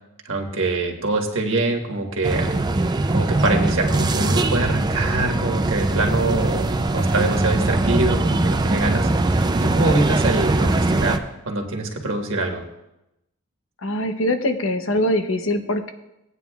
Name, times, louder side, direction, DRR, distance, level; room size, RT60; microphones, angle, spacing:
voice 1, 0.3-2.5 3.1-11.2 11.4-12.6, right 2 dB, 60° right, 2 dB, 1.5 m, -24 dB
sound 1, 2.2-11.2, right 2 dB, 20° right, 0.4 m, -21 dB
voice 2, 13.8-15.9, left 1 dB, 60° left, 7 dB, 0.8 m, -22 dB
17.5 x 9.0 x 2.4 m, 0.91 s
head